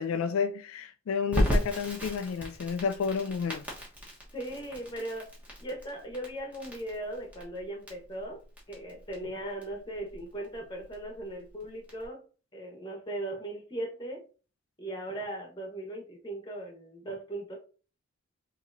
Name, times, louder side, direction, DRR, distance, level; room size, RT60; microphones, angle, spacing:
voice 1, 0.0-3.6, left 6 dB, 80° left, 0.3 m, -31 dB
Crackle, 1.3-12.1, equal, 5° right, 1.1 m, -35 dB
voice 2, 4.3-5.3 5.6-8.4 8.7-12.2 12.5-14.2 14.8-17.6, right 1 dB, 20° left, 1.1 m, -38 dB
5.7 x 2.8 x 2.6 m
head